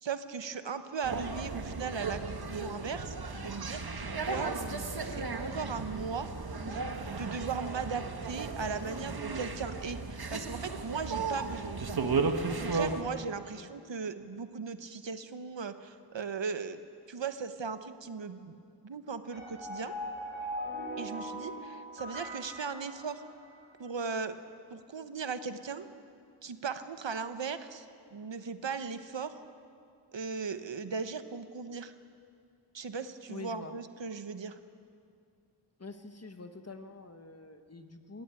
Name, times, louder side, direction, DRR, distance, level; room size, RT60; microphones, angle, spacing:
voice 1, 0.0-3.1 3.4-4.5 5.0-6.3 6.7-6.8 7.1-12.0 12.5-16.8 17.1-18.6 18.8-19.9 21.0-23.2 23.8-24.3 24.7-25.9 26.4-27.8 28.1-29.4 30.1-31.9 32.7-34.6, right 5 dB, 75° right, 10 dB, 1.1 m, -38 dB
sound 1, 1.0-13.0, right 4 dB, 55° right, 1.6 m, -35 dB
sound 2, 19.3-23.6, equal, 25° right, 5.1 m, -40 dB
voice 2, 33.3-33.7 35.8-38.2, left 3 dB, 35° left, 7 dB, 1.5 m, -46 dB
21.0 x 16.5 x 9.1 m, 2.4 s
wide cardioid pair, 85°, 44 cm